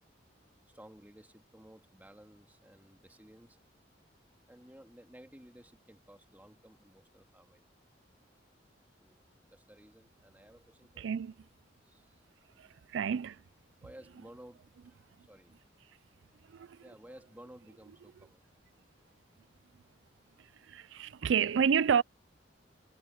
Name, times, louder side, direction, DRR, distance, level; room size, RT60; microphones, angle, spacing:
voice 1, 0.7-3.6 4.5-7.6 9.0-9.2 9.5-11.2 11.7-12.2 13.8-15.6 16.3-18.4, right 1 dB, 10° right, 2.2 m, -56 dB
voice 2, 11.0-11.3 12.6-13.4 16.5-16.8 20.6-22.0, right 7 dB, 75° right, 0.4 m, -29 dB
head